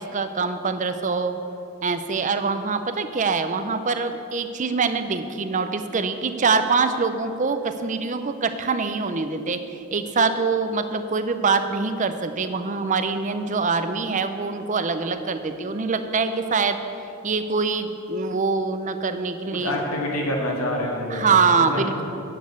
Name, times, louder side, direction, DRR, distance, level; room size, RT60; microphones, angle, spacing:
voice 1, 0.0-1.4 1.8-16.8 17.2-19.8 21.1-22.0, right 4 dB, 35° right, 9 dB, 0.5 m, -24 dB
voice 2, 19.6-21.3 21.7-22.0, left 1 dB, 80° left, -1 dB, 2.0 m, -26 dB
10.5 x 5.3 x 8.2 m, 2.8 s
head